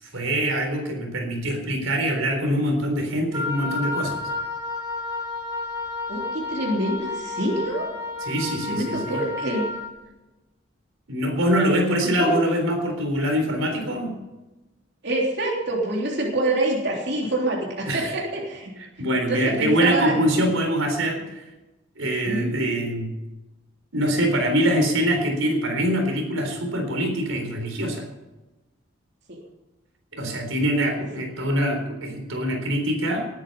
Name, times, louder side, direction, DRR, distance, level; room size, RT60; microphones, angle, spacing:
voice 1, 0.1-4.2 8.2-9.2 11.1-14.1 17.9-18.1 19.0-21.4 22.0-23.1 23.9-28.1 30.1-33.3, equal, 90° right, 3 dB, 3.9 m, -24 dB
Wind instrument woodwind instrument, 3.3-9.9, left 3 dB, 20° right, 3.4 m, -31 dB
voice 2, 6.1-7.9 8.7-9.7 12.0-12.4 15.0-18.7 19.3-20.1 22.2-22.7 29.3-29.4, right 1 dB, 55° right, -2 dB, 3.4 m, -26 dB
19.5 x 9.9 x 5.5 m, 1.1 s
head